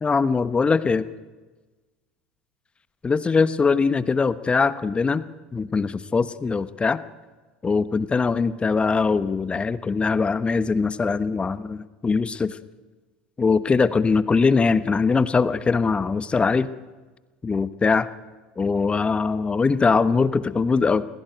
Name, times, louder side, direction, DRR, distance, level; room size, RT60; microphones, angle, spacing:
voice 1, 0.0-1.1 3.0-5.2 5.5-7.0 7.6-12.6 13.4-16.7 17.4-18.1 18.6-21.1, left 4 dB, 20° left, 14 dB, 1.2 m, -21 dB
24.0 x 16.0 x 9.4 m, 1.3 s
hypercardioid pair, 75°, 5 cm